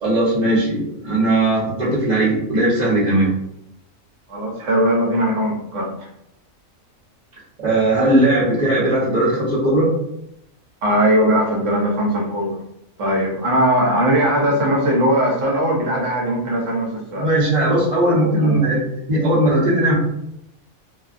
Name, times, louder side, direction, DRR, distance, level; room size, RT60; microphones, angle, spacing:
voice 1, 0.0-3.3 7.6-9.9 17.1-19.9, right 1 dB, 35° right, -6 dB, 0.9 m, -18 dB
voice 2, 4.3-5.9 10.8-12.6 13.0-17.3 18.1-18.6, equal, 65° right, -2 dB, 0.9 m, -19 dB
2.6 x 2.3 x 2.4 m, 0.78 s
omnidirectional pair, 1.4 m